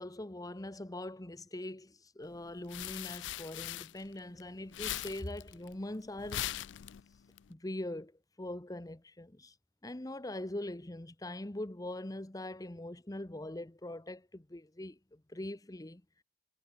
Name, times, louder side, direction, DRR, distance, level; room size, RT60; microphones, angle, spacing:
voice 1, 0.0-6.5 7.5-9.5 9.8-16.0, left 1 dB, 20° left, 1.0 m, -42 dB
sound 1, 2.3-4.4 4.7-7.4, left 13 dB, 85° left, 0.4 m, -40 dB
head